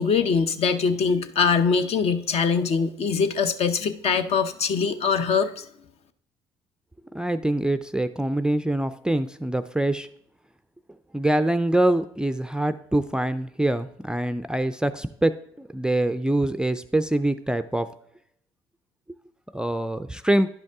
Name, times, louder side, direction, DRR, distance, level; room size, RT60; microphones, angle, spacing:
voice 1, 0.0-5.6, left 5 dB, 50° left, 10 dB, 0.7 m, -23 dB
voice 2, 7.1-10.1 11.1-17.9 19.5-20.5, right 1 dB, 5° right, 12 dB, 0.4 m, -24 dB
10.5 x 5.2 x 3.6 m, 0.72 s
hypercardioid pair, 60°, 13 cm